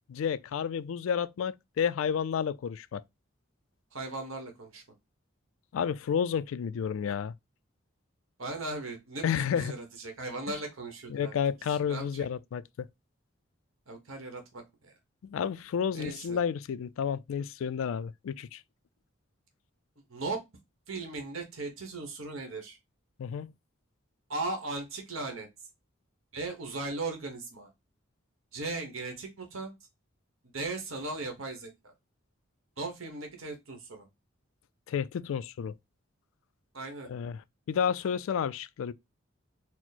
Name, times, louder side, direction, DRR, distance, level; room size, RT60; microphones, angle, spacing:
voice 1, 0.1-3.0 5.7-7.3 9.2-9.7 11.1-12.9 15.2-18.6 23.2-23.5 34.9-35.7 37.1-37.4 37.7-38.9, left 7 dB, 75° left, 0.3 m, -31 dB
voice 2, 3.9-4.8 8.4-11.4 11.7-12.3 13.9-14.9 15.9-16.4 20.1-20.4 20.9-22.8 24.3-25.5 26.3-27.7 28.5-29.7 30.5-31.9 32.8-34.1 36.7-37.1, right 3 dB, 80° right, 1.1 m, -37 dB
4.5 x 2.0 x 4.1 m
head